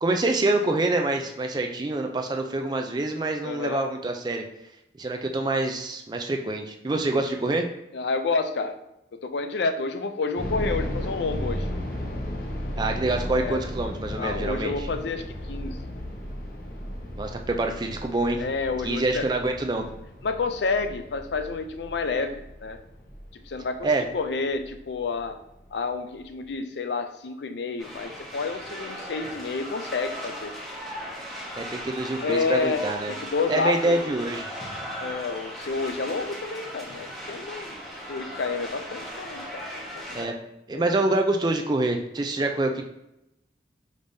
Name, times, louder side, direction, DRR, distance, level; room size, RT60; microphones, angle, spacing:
voice 1, 0.0-4.4 5.0-7.7 12.8-14.9 17.2-18.4 18.8-19.9 23.8-24.0 31.6-33.1 33.5-34.5 40.1-40.3 40.7-42.8, right 2 dB, 25° right, 4 dB, 0.4 m, -26 dB
voice 2, 3.4-3.8 7.9-8.8 9.1-11.7 13.3-13.6 14.2-15.8 18.4-19.4 20.2-22.8 23.5-23.9 24.1-25.4 25.7-30.5 32.2-34.2 35.0-37.8 38.1-39.6 40.0-40.1 40.7-41.0, left 4 dB, 75° left, 8 dB, 0.4 m, -29 dB
sound 1, 10.4-25.2 25.5-25.6 26.2-26.5, equal, 50° left, 0.9 m, -35 dB
sound 2, 27.8-40.2, equal, ahead, 1.0 m, -37 dB
5.1 x 3.4 x 2.7 m, 0.86 s
head